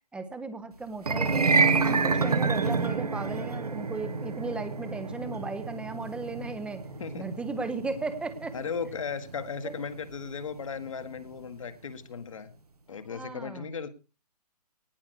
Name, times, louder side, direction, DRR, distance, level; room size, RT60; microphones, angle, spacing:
voice 1, 0.1-1.5 1.8-6.8 7.2-8.5 9.6-9.7 13.1-13.7, right 3 dB, 5° right, 11 dB, 1.0 m, -36 dB
sound 1, 1.0-11.3, right 4 dB, 70° right, 1.6 m, -29 dB
voice 2, 8.5-12.5 12.9-13.9, left 6 dB, 55° left, 10 dB, 1.8 m, -36 dB
18.5 x 6.2 x 6.5 m, 0.33 s
figure-of-eight pair, 130°, 20 cm